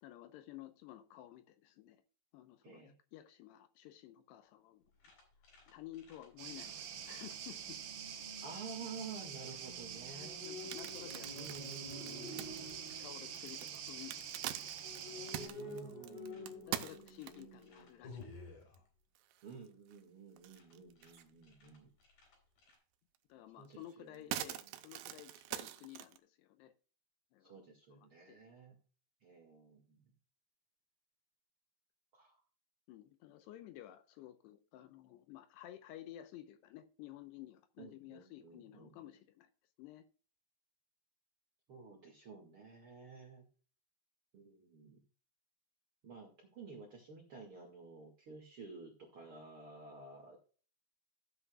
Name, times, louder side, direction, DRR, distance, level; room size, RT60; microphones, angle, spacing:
voice 1, 0.0-2.0 2.3-4.8 5.7-7.8 10.1-11.9 12.4-12.5 13.0-14.8 15.6-16.1 16.7-18.4 23.3-26.7 27.3-27.5 28.3-28.5 32.9-39.5 39.8-40.0, left 13 dB, 80° left, 2.7 m, -53 dB
sound 1, 5.0-7.7 8.4-8.6 8.8-9.1 9.4-9.7 9.9-14.5 14.8-18.8 20.6-20.7 21.0-21.2 21.4-21.8 22.0-22.7, left 2 dB, 50° left, 5.1 m, -50 dB
sound 2, 6.4-15.5, right 8 dB, 70° right, 3.4 m, -46 dB
voice 2, 8.4-10.4 11.3-12.5 15.5-18.3 19.4-21.9 23.6-24.5 27.4-28.7 29.2-30.0 32.1-32.4 37.8-38.9 41.7-43.4 44.3-45.0 46.0-50.4, right 4 dB, 50° right, 1.6 m, -52 dB
sound 3, 10.4-17.6 18.2-18.3 18.7-18.8 19.2-20.0 20.4-21.3 21.7-21.8 23.2-23.3 23.7-26.2, right 13 dB, 85° right, 3.0 m, -45 dB
15.0 x 8.1 x 2.3 m
omnidirectional pair, 5.1 m